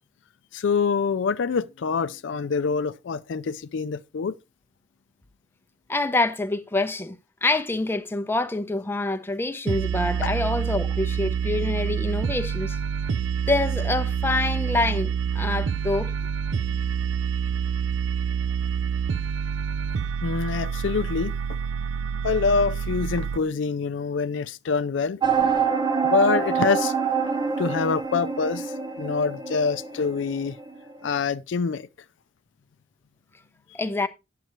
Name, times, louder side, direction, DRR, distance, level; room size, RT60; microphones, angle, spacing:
voice 1, 0.5-4.4 10.2-10.3 16.7-16.8 20.2-21.3 21.9-25.2 26.0-26.9 27.6-30.6 31.0-31.9, left 5 dB, 75° left, 0.4 m, -25 dB
voice 2, 5.9-7.2 7.4-12.8 13.5-16.1 33.7-34.1, left 2 dB, 10° left, 0.6 m, -26 dB
sound 1, 9.7-23.4, right 7 dB, 75° right, 0.4 m, -27 dB
sound 2, 25.2-30.8, right 6 dB, 25° right, 0.9 m, -25 dB
9.1 x 7.6 x 3.0 m
head